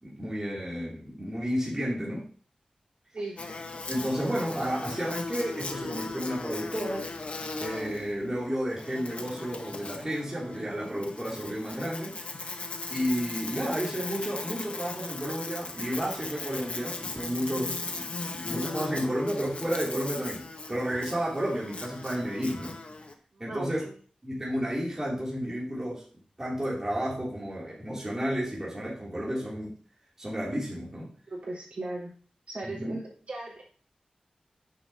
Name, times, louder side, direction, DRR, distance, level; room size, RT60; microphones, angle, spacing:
voice 1, 0.0-2.3 3.9-7.1 7.6-12.2 12.9-22.8 23.4-23.9 24.2-26.0 26.4-29.7 30.2-31.1 32.6-32.9, equal, 20° right, -6 dB, 2.8 m, -32 dB
Buzz, 3.4-23.1, left 3 dB, 60° left, 1.0 m, -38 dB
voice 2, 23.3-23.9 31.3-32.1 32.5-33.6, right 2 dB, 65° right, -6 dB, 3.9 m, -37 dB
9.7 x 6.6 x 2.8 m, 0.42 s
wide cardioid pair, 100°, 2 cm